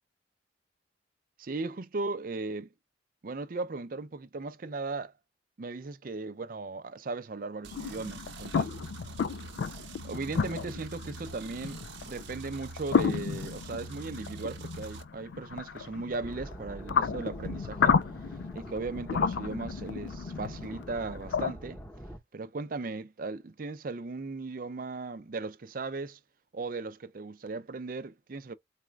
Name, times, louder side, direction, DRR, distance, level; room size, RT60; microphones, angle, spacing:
voice 1, 1.4-2.7 3.2-5.1 5.6-8.7 10.0-18.0 18.5-21.8 22.3-26.2 26.5-28.5, right 3 dB, 45° right, 0.5 m, -37 dB
sound 1, 7.6-15.0, right 3 dB, 85° right, 0.8 m, -45 dB
sound 2, 7.7-21.5, left 6 dB, 70° left, 0.3 m, -32 dB
sound 3, 16.2-22.2, right 1 dB, 10° left, 0.9 m, -45 dB
4.2 x 2.3 x 3.2 m
head